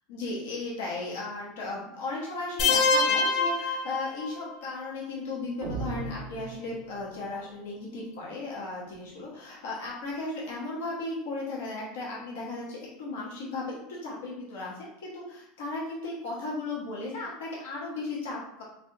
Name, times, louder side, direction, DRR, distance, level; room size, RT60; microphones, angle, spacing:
voice 1, 0.1-18.6, left 2 dB, 90° left, -5 dB, 0.8 m, -36 dB
sound 1, 2.6-4.6, left 4 dB, 45° left, 0.4 m, -25 dB
sound 2, 5.6-7.2, right 3 dB, 60° right, 0.5 m, -37 dB
3.3 x 2.3 x 2.6 m, 0.82 s
supercardioid pair, 140°, 0 cm